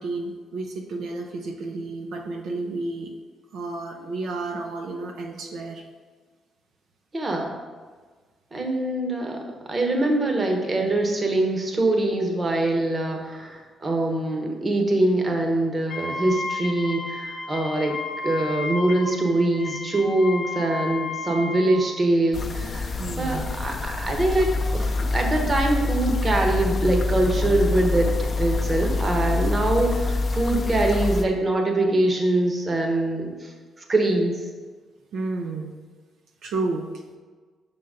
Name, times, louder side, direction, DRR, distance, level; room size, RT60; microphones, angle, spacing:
voice 1, 0.0-3.1 3.5-5.8 23.0-23.5 35.1-35.7 36.4-36.9, right 3 dB, 75° right, 2 dB, 0.6 m, -31 dB
voice 2, 7.1-7.5 8.5-18.0 18.2-33.5 33.9-34.4, right 2 dB, 30° right, 2 dB, 1.0 m, -23 dB
Wind instrument woodwind instrument, 15.9-21.8, left 3 dB, 70° left, 0.9 m, -33 dB
sound 1, 22.3-31.2, left 3 dB, 40° left, 0.5 m, -26 dB
5.7 x 3.9 x 5.0 m, 1.4 s
cardioid pair, 90°, 0 cm